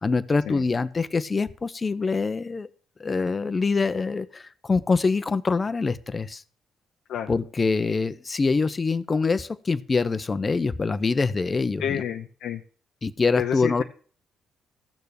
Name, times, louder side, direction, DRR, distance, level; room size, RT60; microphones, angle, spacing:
voice 1, 0.0-2.7 3.0-6.4 7.3-12.0 13.0-13.8, left 4 dB, 35° left, 14 dB, 1.0 m, -24 dB
voice 2, 11.8-12.6 13.4-13.8, left 9 dB, 75° left, 2 dB, 0.9 m, -29 dB
14.5 x 6.8 x 6.6 m, 0.43 s
supercardioid pair, 60°, 0 cm